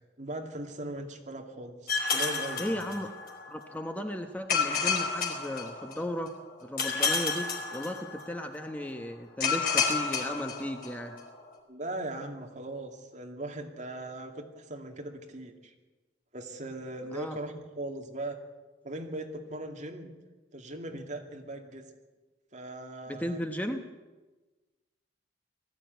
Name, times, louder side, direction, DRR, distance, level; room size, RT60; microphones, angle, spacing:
voice 1, 0.2-3.0 11.7-15.7 16.3-18.4 18.8-20.1 20.5-21.8 22.5-23.4, right 1 dB, 40° right, 3 dB, 2.4 m, -39 dB
sound 1, 1.9-3.5 4.5-6.2 6.8-8.4 9.4-11.2, left 5 dB, 55° left, 4.4 m, -30 dB
voice 2, 2.6-3.1 3.5-6.3 6.6-11.2 17.1-17.4 23.1-23.8, equal, 10° left, 5 dB, 1.0 m, -35 dB
19.5 x 14.5 x 9.3 m, 1.2 s
head